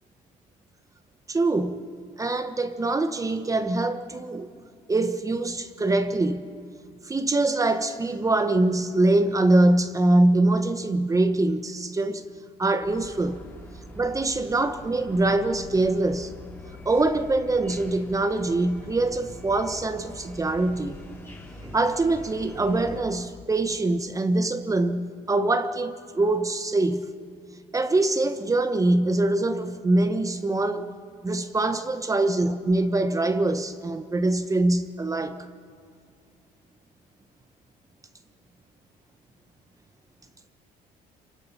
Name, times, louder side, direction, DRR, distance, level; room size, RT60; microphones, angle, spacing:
voice 1, 1.3-1.8 2.2-4.5 4.9-6.4 7.1-12.2 12.6-13.4 13.9-16.3 16.9-21.0 21.6-27.1 27.7-30.9 31.2-35.4, right 2 dB, 20° right, 1.0 m, -24 dB
sound 1, 12.8-23.0, left 1 dB, 15° left, 3.5 m, -44 dB
26.5 x 24.5 x 5.7 m
cardioid pair, 110°, 17 cm